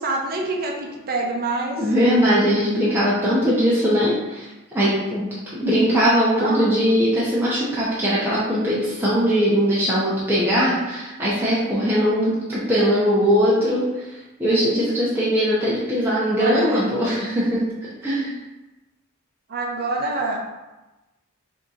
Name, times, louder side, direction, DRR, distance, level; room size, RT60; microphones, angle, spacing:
voice 1, 0.0-1.9 6.4-6.7 12.8-13.2 16.0-16.9 19.5-20.4, right 2 dB, 45° right, 0 dB, 0.7 m, -27 dB
voice 2, 1.8-4.5 4.7-5.2 5.6-17.6 18.0-18.3, equal, 10° right, -9 dB, 0.7 m, -20 dB
3.6 x 2.8 x 3.8 m, 1.1 s
head